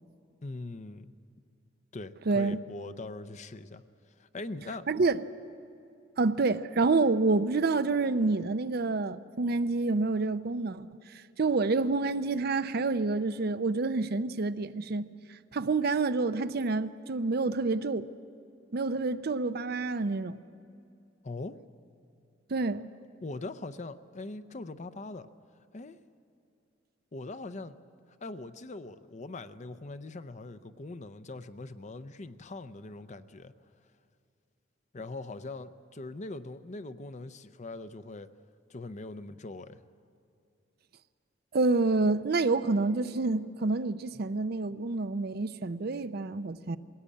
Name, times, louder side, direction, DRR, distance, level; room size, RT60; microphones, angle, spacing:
voice 1, 0.4-1.1 1.9-3.8 4.2-4.9 21.2-21.6 23.2-25.3 25.7-26.0 27.1-27.8 28.2-33.5 34.9-38.3 38.7-39.8, left 2 dB, 40° left, 0.6 m, -41 dB
voice 2, 2.3-2.6 4.9-5.2 6.2-10.9 11.4-15.1 15.5-18.1 18.7-20.4 22.5-22.8 41.5-46.8, right 3 dB, 55° right, 0.6 m, -28 dB
21.5 x 17.0 x 8.5 m
head